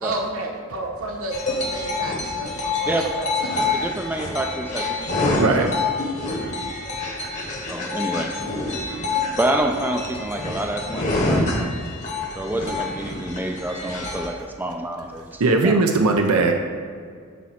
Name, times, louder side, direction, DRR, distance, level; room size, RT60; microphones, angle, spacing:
voice 1, 0.0-3.6, right 2 dB, 70° right, 0 dB, 1.4 m, -31 dB
sound 1, 1.3-14.3, left 2 dB, 35° left, 1.1 m, -27 dB
voice 2, 3.7-5.8 7.7-8.3 9.4-11.7 12.4-15.7, right 1 dB, 10° right, 3 dB, 0.4 m, -28 dB
voice 3, 5.4-5.7 6.3-6.6 15.4-16.5, right 3 dB, 90° right, 3 dB, 0.7 m, -19 dB
8.5 x 4.2 x 5.8 m, 2.1 s
head